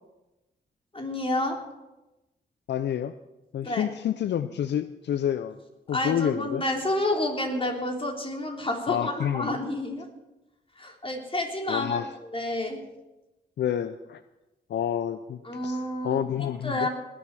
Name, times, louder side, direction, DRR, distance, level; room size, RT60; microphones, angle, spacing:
voice 1, 0.9-1.6 3.6-3.9 5.9-10.1 10.8-12.0 12.3-12.8 15.5-16.9, left 1 dB, 30° left, 1 dB, 3.6 m, -29 dB
voice 2, 2.7-3.2 3.5-5.6 5.9-6.6 8.9-9.6 11.7-12.1 13.6-14.2 14.7-16.9, left 10 dB, 75° left, 12 dB, 0.5 m, -29 dB
20.0 x 7.7 x 6.2 m, 1.0 s
cardioid pair, 60°, 18 cm